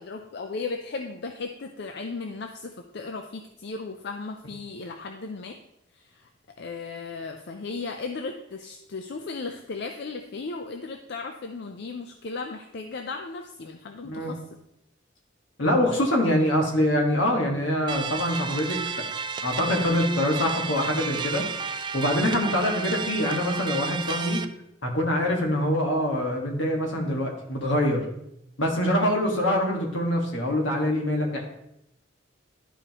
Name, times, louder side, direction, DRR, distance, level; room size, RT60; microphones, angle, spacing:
voice 1, 0.0-5.6 5.9-14.4, left 4 dB, 60° left, 5 dB, 0.5 m, -36 dB
voice 2, 15.6-18.8 19.4-21.4 21.9-24.4 24.8-28.0 28.6-31.5, left 1 dB, 80° left, 1 dB, 1.6 m, -24 dB
sound 1, 17.9-24.4, right 5 dB, 25° right, 0.3 m, -32 dB
11.5 x 5.0 x 2.9 m, 0.81 s
head